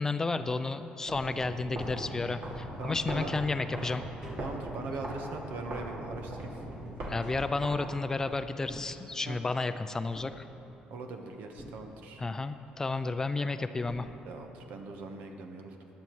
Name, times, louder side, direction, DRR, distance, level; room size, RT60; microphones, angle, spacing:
voice 1, 0.0-4.0 7.1-10.4 12.2-14.1, left 3 dB, 20° left, 10 dB, 0.3 m, -32 dB
sound 1, 1.0-8.4, right 1 dB, 60° right, 2.3 m, -40 dB
Tap, 1.8-2.7 3.2-7.9 8.5-9.6 10.1-11.1 11.6-12.4 13.4-13.5 13.9-14.7 15.0-15.1, right 1 dB, 30° right, 2.3 m, -50 dB
voice 2, 2.8-3.3 4.4-6.6 9.2-9.4 10.9-12.2 14.2-15.8, right 3 dB, 75° right, 4 dB, 1.1 m, -41 dB
15.5 x 11.0 x 3.1 m, 3.0 s
cardioid pair, 130°, 3 cm